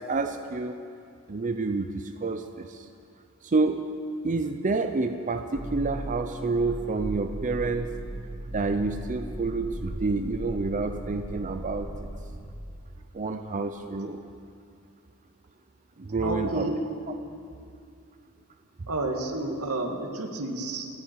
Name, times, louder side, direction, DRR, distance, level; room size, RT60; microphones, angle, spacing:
voice 1, 0.1-0.8 1.3-2.9 3.4-3.8 4.2-7.9 8.5-11.9 13.1-14.2 16.0-16.7, right 3 dB, 35° right, 6 dB, 0.6 m, -28 dB
sound 1, 5.5-12.4, right 1 dB, 20° right, 2.1 m, -37 dB
voice 2, 16.2-16.7 18.9-20.9, right 2 dB, 85° right, 2 dB, 2.0 m, -30 dB
29.0 x 9.7 x 4.7 m, 2.4 s
head